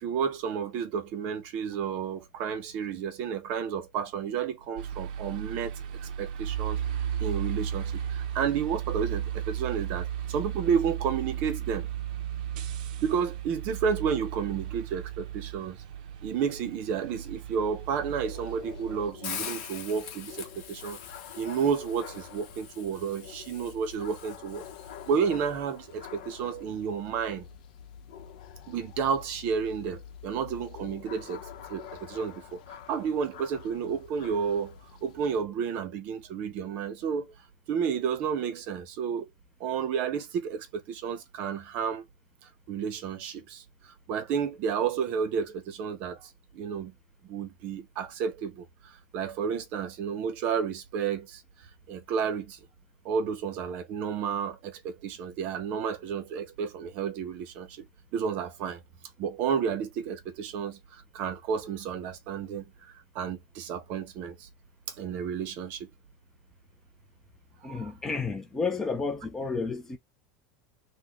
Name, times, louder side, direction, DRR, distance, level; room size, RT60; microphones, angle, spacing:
voice 1, 0.0-5.7 6.2-6.8 7.2-11.9 13.0-15.8 16.2-21.0 21.4-24.6 25.1-27.4 28.7-31.4 31.7-32.6 32.9-34.7 35.0-37.2 37.7-39.3 39.6-42.0 42.7-43.6 44.1-46.2 46.5-46.9 47.3-48.6 49.1-51.4 51.9-52.6 53.0-57.7 58.1-58.8 59.2-60.8 61.1-62.7 63.1-64.4 65.0-65.9 67.8-67.9, right 7 dB, 40° right, 0.7 m, -31 dB
sound 1, 4.8-19.1, right 9 dB, 85° right, 0.5 m, -35 dB
sound 2, 17.4-35.4, left 8 dB, 85° left, 0.7 m, -47 dB
Hiss, 19.2-25.3, left 8 dB, 45° left, 1.1 m, -43 dB
voice 2, 67.6-70.0, left 4 dB, 10° left, 0.4 m, -31 dB
3.9 x 2.1 x 3.0 m
supercardioid pair, 175°, 4 cm